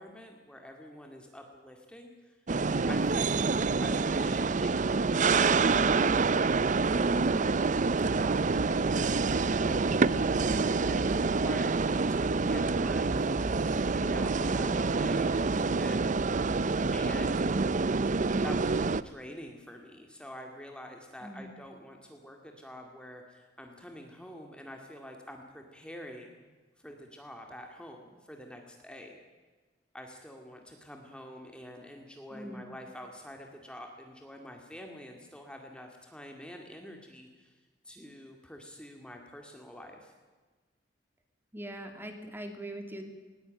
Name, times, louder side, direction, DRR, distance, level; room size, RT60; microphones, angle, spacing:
voice 1, 0.0-2.4 2.9-4.7 5.0-6.3 6.8-7.4 8.1-9.2 9.5-10.1 10.5-16.1 16.9-17.7 18.4-26.5 26.8-29.2 29.9-37.5 37.8-40.1, equal, 5° left, 2 dB, 2.3 m, -46 dB
sound 1, 2.5-19.0, right 4 dB, 45° right, 0.6 m, -27 dB
voice 2, 21.2-21.5 32.3-32.7 41.5-43.0, right 1 dB, 15° right, 5 dB, 2.8 m, -41 dB
20.0 x 19.5 x 9.1 m, 1.4 s
head